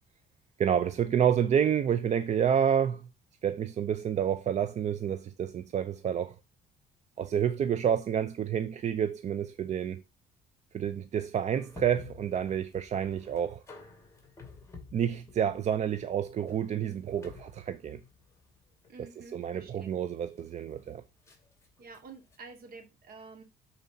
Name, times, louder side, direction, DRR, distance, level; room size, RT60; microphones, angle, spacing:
voice 1, 0.6-3.1 3.4-6.4 7.2-10.0 10.7-13.6 14.9-18.0 19.3-21.0, right 8 dB, 45° right, 0.5 m, -29 dB
sound 1, 11.5-22.4, left 4 dB, 15° left, 2.7 m, -52 dB
voice 2, 18.9-19.9 21.8-23.4, right 4 dB, 60° right, 2.3 m, -49 dB
12.5 x 4.3 x 2.7 m
cardioid pair, 110°, 17 cm